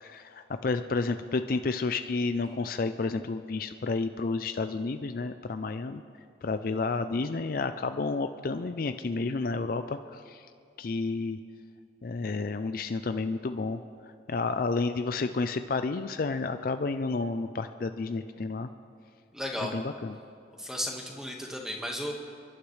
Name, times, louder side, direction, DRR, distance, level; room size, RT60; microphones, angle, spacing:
voice 1, 0.0-6.0 6.4-10.5 10.8-11.4 12.0-13.8 14.3-18.7 19.6-20.2, left 3 dB, 50° left, 9 dB, 0.4 m, -31 dB
voice 2, 19.3-19.7 20.6-22.1, equal, 5° right, 0 dB, 1.5 m, -34 dB
29.5 x 11.5 x 3.3 m, 2.3 s
head